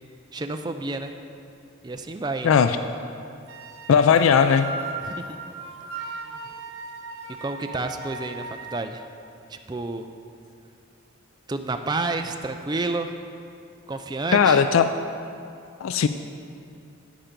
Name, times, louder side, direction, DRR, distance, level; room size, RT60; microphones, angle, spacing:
voice 1, 0.3-1.1 1.8-2.6 5.0-5.4 5.9-6.2 7.4-9.0 9.5-10.1 11.5-13.1 13.9-14.6, right 3 dB, 20° right, 6 dB, 0.4 m, -30 dB
voice 2, 2.4-2.8 3.9-4.7 14.3-14.9 15.8-16.1, left 6 dB, 85° left, 10 dB, 0.4 m, -17 dB
sound 1, 3.5-8.8, right 3 dB, 75° right, 1.1 m, -37 dB
10.5 x 8.8 x 5.2 m, 2.5 s
head